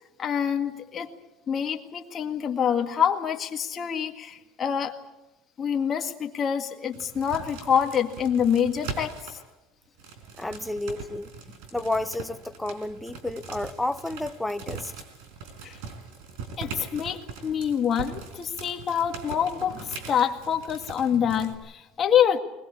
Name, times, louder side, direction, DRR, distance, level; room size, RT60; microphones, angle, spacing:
voice 1, 0.2-1.1 1.5-4.9 5.6-9.3 11.5-11.6 15.6-15.8 16.6-22.4, left 8 dB, 30° left, 3 dB, 1.9 m, -26 dB
sound 1, 6.9-9.4 10.0-21.5, right 5 dB, 80° right, 4.3 m, -41 dB
voice 2, 10.4-11.3 11.7-14.9, left 2 dB, 5° left, 10 dB, 0.8 m, -31 dB
21.0 x 20.5 x 8.6 m, 0.98 s
cardioid pair, 150°, 0 cm